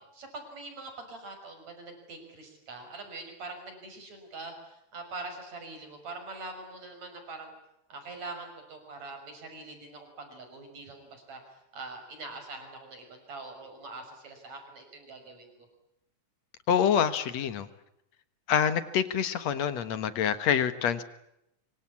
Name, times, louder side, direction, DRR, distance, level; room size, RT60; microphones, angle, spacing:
voice 1, 0.1-7.5 7.9-11.4 11.7-15.5, right 3 dB, 60° right, 5 dB, 7.4 m, -43 dB
voice 2, 16.7-17.7 18.5-21.0, left 8 dB, 65° left, 12 dB, 2.5 m, -26 dB
25.5 x 24.0 x 8.6 m, 0.83 s
omnidirectional pair, 3.5 m